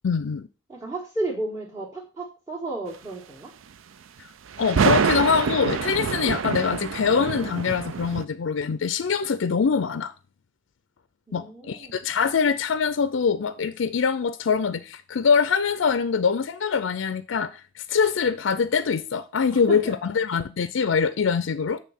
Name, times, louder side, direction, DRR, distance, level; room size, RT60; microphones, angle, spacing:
voice 1, 0.0-0.5 4.6-10.1 11.3-21.8, left 6 dB, 75° left, 0.4 m, -24 dB
voice 2, 0.7-3.5 11.3-12.0 19.5-19.9, right 2 dB, 20° right, 1.6 m, -33 dB
sound 1, 4.5-8.2, right 6 dB, 90° right, 0.5 m, -25 dB
8.4 x 3.6 x 5.7 m
head